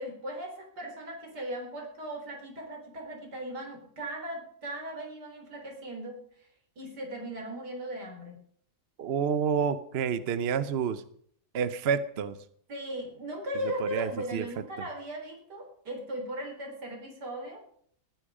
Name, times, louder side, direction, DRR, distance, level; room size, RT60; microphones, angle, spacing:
voice 1, 0.0-6.5 6.8-8.4 12.7-17.6, right 1 dB, 80° right, 2 dB, 4.5 m, -38 dB
voice 2, 9.0-11.0 11.5-12.4 13.8-14.5, right 7 dB, 50° right, 14 dB, 0.9 m, -29 dB
19.0 x 10.5 x 5.0 m, 0.63 s
omnidirectional pair, 1.7 m